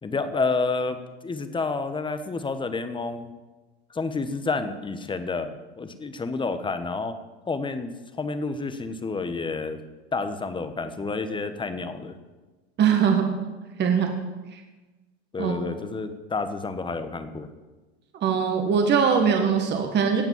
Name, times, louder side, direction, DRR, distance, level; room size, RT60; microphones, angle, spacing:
voice 1, 0.0-3.3 3.9-7.1 7.5-9.8 10.1-12.2 15.3-17.5, left 4 dB, 15° left, 10 dB, 1.2 m, -29 dB
voice 2, 12.8-13.4 13.8-14.1 14.5-14.6 15.4-15.5 18.2-20.2, right 6 dB, 30° right, 4 dB, 1.7 m, -21 dB
17.0 x 5.9 x 7.3 m, 1.2 s
hypercardioid pair, 100°, 33 cm